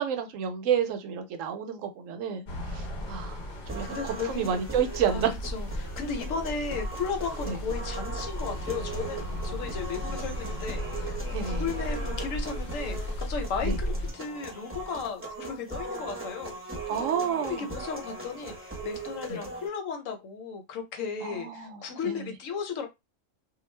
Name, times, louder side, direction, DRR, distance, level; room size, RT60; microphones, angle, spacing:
voice 1, 0.0-2.5 2.7-3.4 3.7-5.3 7.5-7.6 11.3-11.7 13.6-13.8 16.9-17.7 19.3-19.4 21.2-22.3, right 7 dB, 80° right, 1.0 m, -30 dB
sound 1, 2.4-14.1, equal, 45° left, 0.7 m, -35 dB
sound 2, 3.7-19.7, right 2 dB, 15° right, 0.7 m, -40 dB
voice 2, 3.8-4.6 5.1-16.6 17.0-17.1 17.4-22.9, left 5 dB, 80° left, 1.0 m, -35 dB
2.3 x 2.2 x 3.2 m
omnidirectional pair, 1.3 m